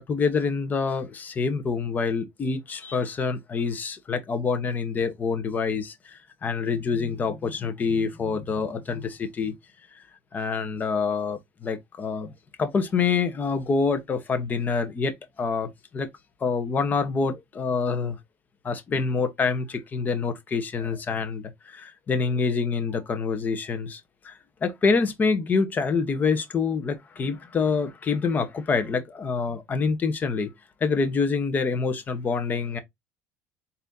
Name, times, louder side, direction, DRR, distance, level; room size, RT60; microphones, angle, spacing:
voice 1, 0.0-9.5 10.3-12.3 12.6-16.1 16.4-18.2 18.6-24.3 24.6-30.5 30.8-32.8, left 5 dB, 30° left, 1.0 m, -26 dB
4.2 x 3.6 x 2.6 m
cardioid pair, 115°, 6 cm